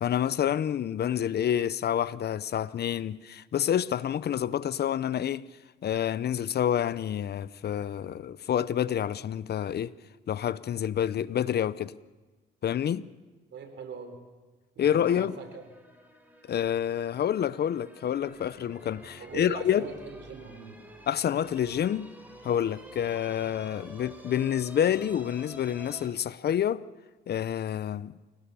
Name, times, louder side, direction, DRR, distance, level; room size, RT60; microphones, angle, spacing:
voice 1, 0.0-5.5 5.8-9.9 10.3-11.9 12.6-13.1 14.8-15.4 16.5-19.9 21.1-22.1 22.4-26.9 27.3-28.1, left 9 dB, 55° left, 0.7 m, -28 dB
voice 2, 13.5-14.2 14.8-15.6 19.2-20.8, right 5 dB, 65° right, 4.0 m, -42 dB
sound 1, 14.8-26.1, equal, 10° right, 4.4 m, -50 dB
29.0 x 17.0 x 7.0 m
cardioid pair, 90°, 20 cm